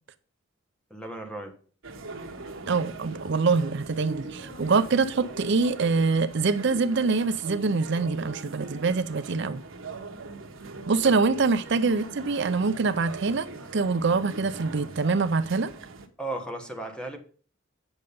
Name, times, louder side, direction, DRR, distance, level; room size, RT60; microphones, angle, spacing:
voice 1, 0.9-1.5 11.0-11.1 16.2-17.2, right 2 dB, 5° left, 1.5 m, -35 dB
sound 1, 1.8-16.1, right 3 dB, 85° right, 1.3 m, -41 dB
voice 2, 2.7-9.6 10.9-13.5 13.7-15.7, right 4 dB, 60° right, 0.5 m, -24 dB
8.9 x 6.4 x 5.3 m
head